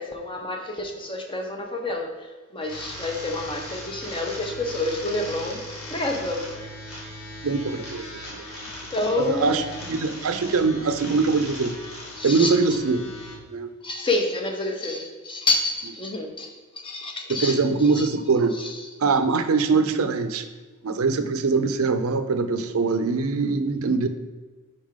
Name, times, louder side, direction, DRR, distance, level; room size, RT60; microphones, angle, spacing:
voice 1, 0.0-2.3 2.5-5.6 5.9-6.7 8.9-9.6 12.1-12.8 13.8-16.5 16.8-17.6 17.9-18.1 18.5-18.8, left 2 dB, 25° left, 2 dB, 0.8 m, -28 dB
sound 1, 2.6-13.3, left 1 dB, 70° left, 1.6 m, -38 dB
voice 2, 7.4-8.0 9.2-9.6 9.9-11.8 12.2-13.0 13.5-13.7 17.3-18.6 19.0-20.4 20.8-24.1, right 4 dB, 70° right, 9 dB, 0.5 m, -22 dB
5.5 x 3.6 x 5.0 m, 1.3 s
head